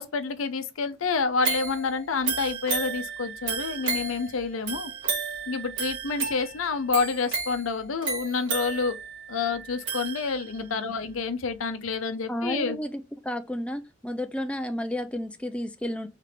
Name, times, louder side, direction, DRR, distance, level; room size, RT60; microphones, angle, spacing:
voice 1, 0.0-4.9 5.5-9.0 9.3-12.8, left 4 dB, 90° left, 0.6 m, -28 dB
sound 1, 1.4-10.7 11.1-11.2, right 5 dB, 65° right, 1.5 m, -33 dB
voice 2, 10.6-11.0 12.3-16.1, left 1 dB, 5° left, 0.3 m, -32 dB
3.3 x 3.3 x 4.9 m
head